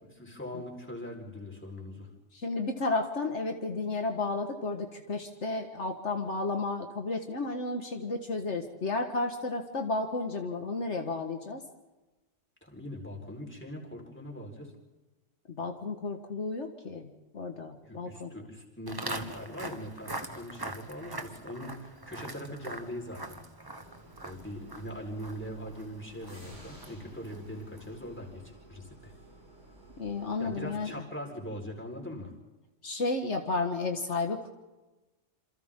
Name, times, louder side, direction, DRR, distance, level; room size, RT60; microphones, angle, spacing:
voice 1, 0.0-2.1 12.6-14.7 17.8-23.4 24.2-29.1 30.4-32.3, equal, 10° left, -1 dB, 4.6 m, -41 dB
voice 2, 2.3-11.6 15.5-18.3 30.0-30.9 32.8-34.5, left 3 dB, 70° left, 4 dB, 1.9 m, -32 dB
Walk footsteps, 18.9-28.1, right 2 dB, 20° right, 1.3 m, -43 dB
sound 1, 23.8-30.8, right 1 dB, 80° right, 8.4 m, -54 dB
27.5 x 27.5 x 3.8 m, 1.1 s
omnidirectional pair, 1.3 m